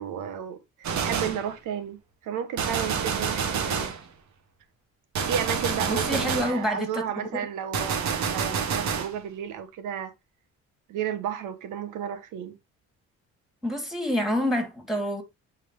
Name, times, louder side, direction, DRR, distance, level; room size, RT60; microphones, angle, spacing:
voice 1, 0.0-2.0 2.2-3.9 5.3-10.1 10.9-12.5, right 8 dB, 90° right, 1.2 m, -33 dB
Gunshot gunfire, 0.8-1.5 2.6-4.0 5.1-6.6 7.7-9.1, right 6 dB, 65° right, 1.3 m, -28 dB
voice 2, 5.9-7.3 13.6-15.2, equal, ahead, 2.6 m, -27 dB
8.3 x 3.7 x 3.1 m
cardioid pair, 90°, 30 cm